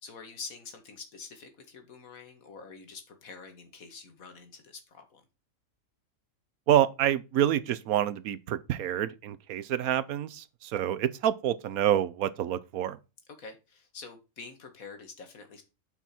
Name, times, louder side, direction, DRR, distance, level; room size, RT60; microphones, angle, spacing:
voice 1, 0.0-5.2 13.3-15.6, left 4 dB, 75° left, 2.0 m, -46 dB
voice 2, 6.7-13.0, right 11 dB, 85° right, 1.2 m, -27 dB
8.4 x 5.6 x 4.3 m
omnidirectional pair, 1.5 m